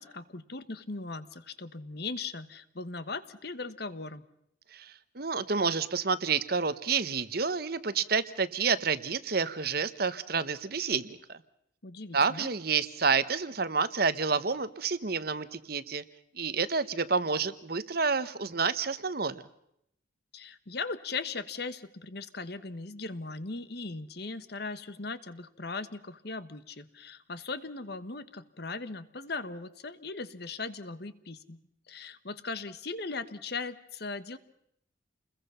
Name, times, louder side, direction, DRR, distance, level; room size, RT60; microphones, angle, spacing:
voice 1, 0.0-4.2 11.8-12.5 20.3-31.6 31.9-34.4, left 3 dB, 55° left, 13 dB, 1.3 m, -38 dB
voice 2, 4.7-11.4 12.1-16.0 16.3-19.4, right 5 dB, 50° right, 14 dB, 1.0 m, -29 dB
29.0 x 21.5 x 5.7 m, 0.74 s
head